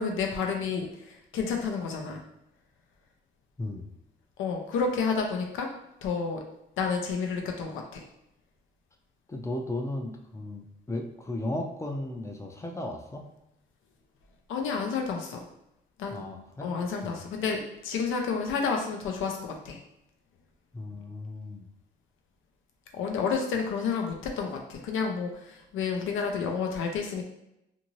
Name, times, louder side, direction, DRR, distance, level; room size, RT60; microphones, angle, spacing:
voice 1, 0.0-2.2 4.4-5.7 6.0-6.4 6.8-8.1 14.5-15.4 16.0-16.3 16.6-19.8 22.9-27.2, left 5 dB, 80° left, 2 dB, 0.6 m, -30 dB
voice 2, 3.6-3.9 9.3-13.3 16.1-16.7 17.0-17.2 20.7-21.7, left 1 dB, 15° left, 2 dB, 0.5 m, -35 dB
2.6 x 2.6 x 3.0 m, 0.86 s
cardioid pair, 90°, 20 cm